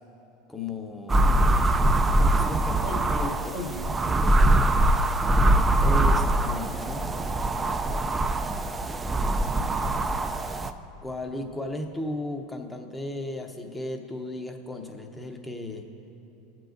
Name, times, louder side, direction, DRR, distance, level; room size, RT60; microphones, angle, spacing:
voice 1, 0.5-1.5 2.3-2.7 3.1-3.5 5.8-7.0 11.0-15.8, left 2 dB, 10° left, 4 dB, 0.8 m, -35 dB
sound 1, 1.1-10.7, right 1 dB, 15° right, 0.4 m, -23 dB
voice 2, 2.1-3.0 3.5-3.9 9.2-10.1, left 2 dB, 40° left, -3 dB, 2.4 m, -39 dB
18.0 x 7.6 x 2.6 m, 2.9 s
supercardioid pair, 110°, 0 cm